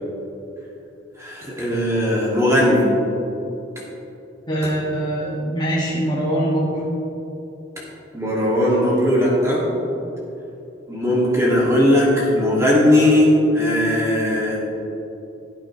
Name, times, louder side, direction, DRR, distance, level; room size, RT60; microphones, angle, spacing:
voice 1, 1.2-2.9 8.1-9.6 10.9-14.6, left 1 dB, 15° right, -6 dB, 2.4 m, -18 dB
voice 2, 4.5-6.8, right 1 dB, 25° left, -6 dB, 2.0 m, -23 dB
16.5 x 9.0 x 3.3 m, 2.9 s
head